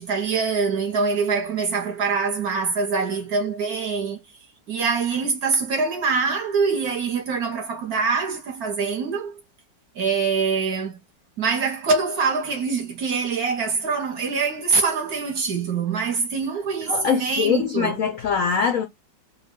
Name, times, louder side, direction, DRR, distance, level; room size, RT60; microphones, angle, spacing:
voice 1, 0.0-4.2 4.7-9.4 9.9-11.0 11.4-18.0, right 4 dB, 55° right, 1.2 m, -24 dB
voice 2, 16.9-18.8, left 7 dB, 75° left, 0.7 m, -23 dB
3.9 x 2.4 x 3.6 m
omnidirectional pair, 2.2 m